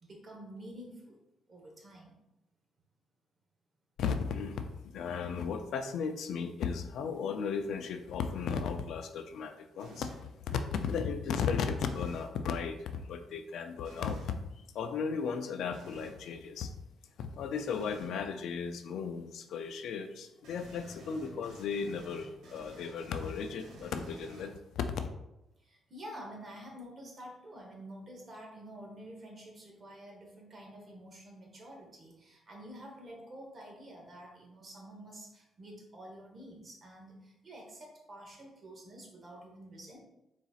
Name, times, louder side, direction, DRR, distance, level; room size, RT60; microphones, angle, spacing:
voice 1, 0.0-1.2 1.5-2.2 24.3-24.5 25.6-40.0, equal, 35° right, 0 dB, 1.1 m, -49 dB
voice 2, 4.0-14.3 14.7-16.7 17.2-25.1, left 6 dB, 70° left, 7 dB, 0.4 m, -35 dB
sound 1, 9.8-10.3 11.8-12.3 13.8-14.3 15.7-16.2 17.7-18.2 20.4-24.8, equal, 85° right, 1.3 m, -52 dB
4.1 x 3.9 x 2.4 m, 0.90 s
cardioid pair, 120°, 0 cm